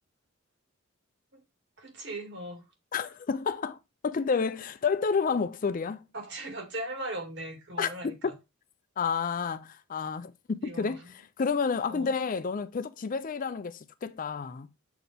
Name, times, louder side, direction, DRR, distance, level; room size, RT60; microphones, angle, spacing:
voice 1, 1.8-2.6 6.1-8.3 10.6-11.1 11.9-12.1, right 1 dB, 60° right, 2.1 m, -39 dB
voice 2, 2.9-3.8 4.0-6.0 7.8-8.2 9.0-11.0 11.4-14.7, left 5 dB, 40° left, 0.4 m, -30 dB
6.9 x 4.2 x 3.4 m
head